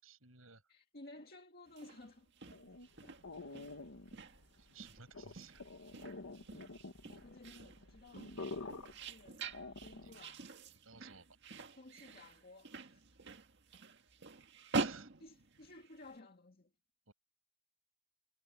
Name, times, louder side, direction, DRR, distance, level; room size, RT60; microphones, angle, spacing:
voice 1, 0.0-0.6 4.6-5.6 10.0-10.1 10.8-11.4 14.8-15.1 17.1-17.2, right 6 dB, 80° right, 7.6 m, -57 dB
voice 2, 0.7-2.5 3.0-3.2 3.5-3.7 7.1-8.4 8.9-9.4 9.7-10.5 11.8-13.0 15.2-16.7, left 2 dB, 50° left, 2.1 m, -56 dB
sound 1, 1.7-16.1, right 3 dB, 60° right, 1.8 m, -46 dB
sound 2, 2.5-10.3, left 3 dB, 80° left, 1.7 m, -49 dB
head